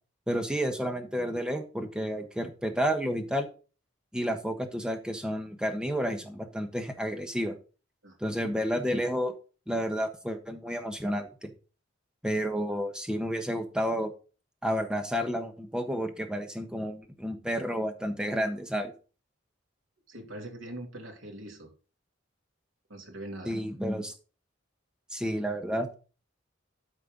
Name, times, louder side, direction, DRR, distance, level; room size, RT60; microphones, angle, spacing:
voice 1, 0.3-3.5 4.1-7.5 8.2-9.3 9.7-11.5 12.2-14.1 14.6-18.9 23.4-24.1 25.1-25.9, equal, 5° right, 6 dB, 1.3 m, -31 dB
voice 2, 20.1-21.7 22.9-23.6, right 1 dB, 80° right, 3 dB, 2.8 m, -42 dB
12.5 x 4.5 x 5.4 m, 0.35 s
head